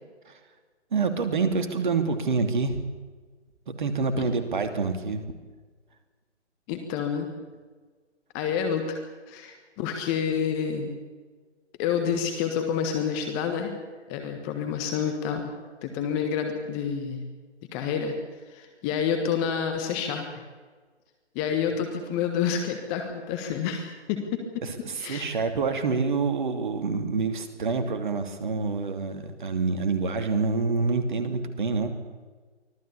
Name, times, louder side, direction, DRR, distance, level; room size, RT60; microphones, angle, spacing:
voice 1, 0.9-2.8 3.7-5.2 24.6-31.9, right 4 dB, 45° right, 7 dB, 2.9 m, -27 dB
voice 2, 6.7-7.3 8.3-11.0 11.8-13.7 14.1-15.5 15.8-17.3 17.7-18.1 18.5-20.4 21.3-24.6 25.0-25.2, left 7 dB, 15° left, 5 dB, 1.5 m, -28 dB
24.5 x 17.0 x 8.4 m, 1.4 s
figure-of-eight pair, 150°, 35 cm